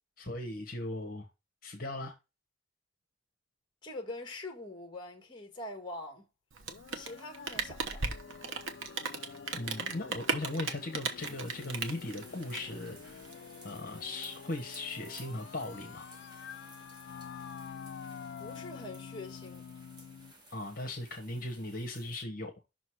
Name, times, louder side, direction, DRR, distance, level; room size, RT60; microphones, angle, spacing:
voice 1, 0.2-1.3 1.6-2.1 9.5-13.2 13.6-16.1 20.5-22.5, left 2 dB, 45° left, 1.2 m, -38 dB
voice 2, 3.8-6.2 6.9-8.0 18.4-19.7, left 2 dB, 25° left, 1.6 m, -43 dB
Rain, 6.5-13.3, right 4 dB, 80° right, 1.0 m, -37 dB
sound 1, 6.7-20.3, left 7 dB, 65° left, 0.3 m, -48 dB
sound 2, 11.2-22.2, right 2 dB, 20° right, 1.3 m, -56 dB
6.0 x 4.0 x 4.6 m
head